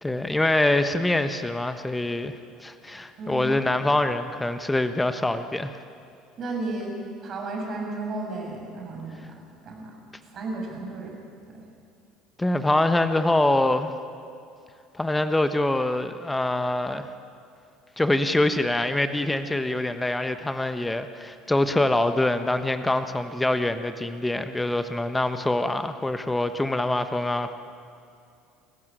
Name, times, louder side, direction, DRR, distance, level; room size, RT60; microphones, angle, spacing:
voice 1, 0.0-2.3 2.6-5.7 12.4-13.9 14.9-17.1 18.0-27.5, left 1 dB, 10° left, 9 dB, 1.3 m, -24 dB
voice 2, 3.2-3.5 6.4-6.9 7.2-9.2 9.6-9.9 10.3-11.2 11.5-11.6, right 2 dB, 45° right, 1 dB, 7.1 m, -33 dB
29.0 x 15.0 x 8.9 m, 2.4 s
figure-of-eight pair, 65°, 0 cm